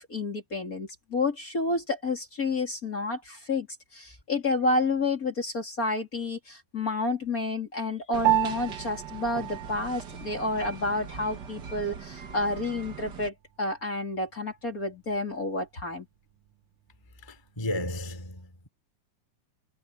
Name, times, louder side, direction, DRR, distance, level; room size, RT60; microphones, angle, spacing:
voice 1, 0.0-3.7 3.9-16.1, left 2 dB, 30° left, 3.2 m, -30 dB
sound 1, 8.1-13.3, right 6 dB, 45° right, 1.7 m, -41 dB
Piano, 8.2-17.9, right 19 dB, 65° right, 1.5 m, -35 dB
voice 2, 17.3-18.7, left 1 dB, 10° left, 2.6 m, -34 dB
omnidirectional pair, 3.5 m